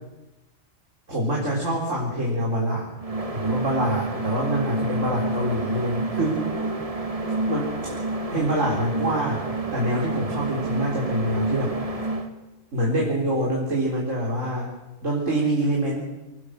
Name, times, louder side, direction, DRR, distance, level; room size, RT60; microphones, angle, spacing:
voice 1, 1.1-2.9 3.3-6.7 7.5-7.9 8.3-11.8 12.7-14.7 15.0-16.0, right 1 dB, 70° right, -3 dB, 4.3 m, -25 dB
sound 1, 3.0-12.3, right 2 dB, 25° right, 1.8 m, -29 dB
24.5 x 18.5 x 6.6 m, 1.0 s
omnidirectional pair, 1.4 m